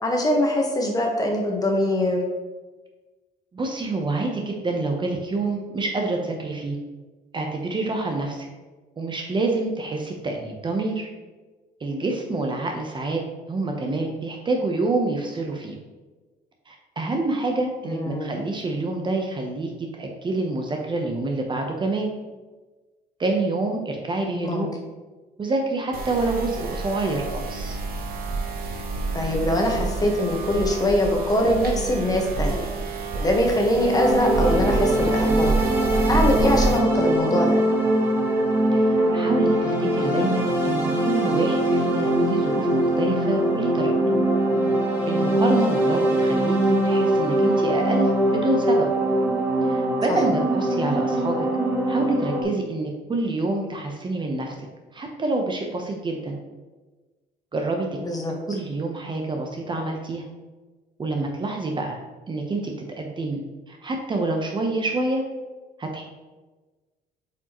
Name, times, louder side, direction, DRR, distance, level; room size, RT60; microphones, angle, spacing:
voice 1, 0.0-2.2 17.8-18.3 24.4-24.7 29.1-32.6 33.1-35.5 36.1-37.6 50.1-50.2 58.0-58.3, left 1 dB, 20° left, 1 dB, 1.3 m, -23 dB
voice 2, 3.5-6.8 7.3-8.5 9.0-11.1 11.8-13.2 13.5-15.8 16.7-22.1 23.2-24.7 25.4-27.8 38.7-43.9 45.1-48.9 49.6-51.4 51.9-54.7 54.9-56.4 57.5-57.9 58.5-60.2 61.0-62.0 62.3-65.2 65.8-66.0, right 2 dB, 30° right, 2 dB, 0.8 m, -27 dB
sound 1, 25.9-36.8, right 3 dB, 60° right, 1.2 m, -28 dB
sound 2, 33.9-52.4, right 1 dB, 10° right, 1.7 m, -22 dB
8.1 x 4.7 x 3.0 m, 1.2 s
cardioid pair, 110°, 17 cm